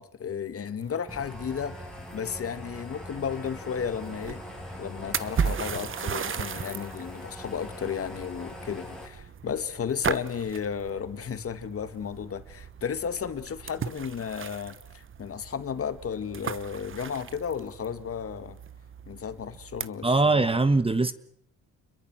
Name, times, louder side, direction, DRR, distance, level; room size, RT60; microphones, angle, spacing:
voice 1, 0.0-4.4 4.8-18.6 19.1-20.5, left 7 dB, 50° left, 2.1 m, -34 dB
sound 1, 0.8-19.9, right 7 dB, 40° right, 1.1 m, -37 dB
sound 2, 1.1-9.1, left 1 dB, ahead, 6.5 m, -42 dB
voice 2, 20.0-21.1, right 3 dB, 20° right, 1.3 m, -22 dB
29.5 x 22.0 x 6.3 m
cardioid pair, 90°, 30 cm